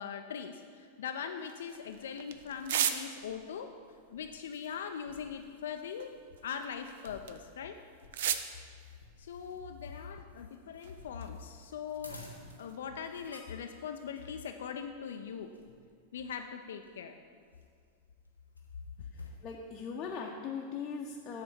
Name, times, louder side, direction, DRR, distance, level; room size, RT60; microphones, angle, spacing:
voice 1, 0.0-3.7 4.1-6.1 6.4-7.8 9.2-12.2 12.6-15.5 16.1-17.1, left 7 dB, 60° left, 5 dB, 0.4 m, -41 dB
sound 1, 1.4-3.5 4.3-7.5 8.0-8.5 9.4-10.6 10.8-13.0, right 9 dB, 55° right, 0.4 m, -39 dB
sound 2, 1.7-20.2, left 1 dB, 85° left, 1.1 m, -58 dB
voice 2, 19.4-21.4, left 5 dB, 30° left, -1 dB, 0.7 m, -39 dB
8.1 x 4.2 x 6.9 m, 2.1 s
figure-of-eight pair, 90°, 0 cm